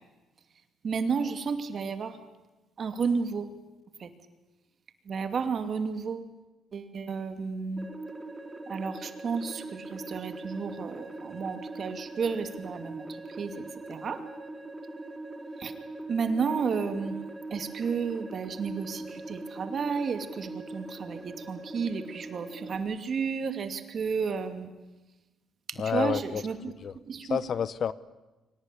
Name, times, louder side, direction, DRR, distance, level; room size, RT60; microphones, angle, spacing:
voice 1, 0.8-2.2 2.8-3.5 4.0-4.1 5.1-6.3 6.7-7.9 8.7-13.6 13.9-14.2 15.6-15.7 16.1-17.2 17.5-24.7 25.8-26.7 27.1-27.4, right 5 dB, 45° right, 8 dB, 2.5 m, -32 dB
sound 1, 7.8-22.8, right 2 dB, 15° right, 3.3 m, -41 dB
voice 2, 25.8-26.4 26.8-26.9 27.2-27.9, left 7 dB, 50° left, 17 dB, 0.8 m, -29 dB
24.0 x 18.5 x 10.0 m, 1.1 s
cardioid pair, 105°, 0 cm